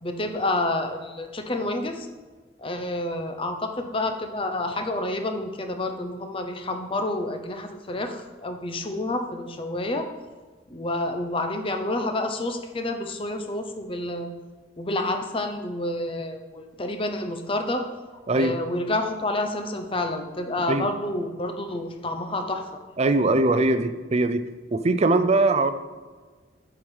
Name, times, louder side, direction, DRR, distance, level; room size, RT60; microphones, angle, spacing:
voice 1, 0.0-2.1 2.6-10.1 10.7-14.3 14.8-17.8 18.3-22.6, left 2 dB, 30° left, 6 dB, 0.7 m, -29 dB
voice 2, 18.3-18.6 20.7-20.9 23.0-24.4 24.7-25.7, right 2 dB, 35° right, 10 dB, 0.5 m, -21 dB
7.7 x 4.9 x 5.5 m, 1.4 s
head